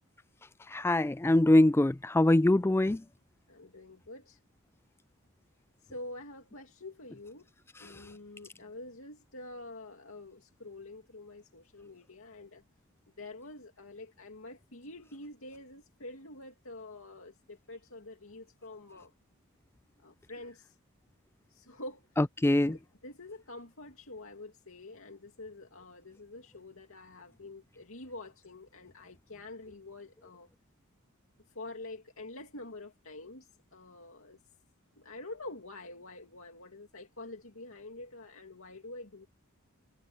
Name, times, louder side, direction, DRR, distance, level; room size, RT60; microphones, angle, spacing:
voice 1, 0.7-3.0 22.4-22.8, left 1 dB, 10° left, 0.3 m, -23 dB
voice 2, 3.5-4.4 5.8-7.5 7.8-12.6 13.2-19.1 20.0-20.8 21.5-22.0 22.5-30.5 31.5-34.4 35.0-39.3, left 2 dB, 70° left, 2.5 m, -47 dB
head